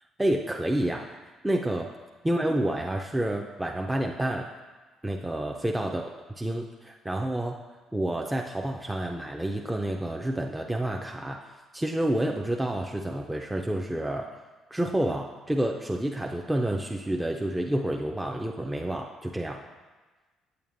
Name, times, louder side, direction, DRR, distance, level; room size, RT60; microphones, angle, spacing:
voice 1, 0.2-1.1 1.4-1.9 2.2-4.4 5.0-6.1 6.4-7.6 7.9-11.4 11.7-14.3 14.7-19.6, right 1 dB, 10° right, 1 dB, 0.5 m, -29 dB
8.7 x 6.8 x 2.6 m, 1.3 s
hypercardioid pair, 60°, 0 cm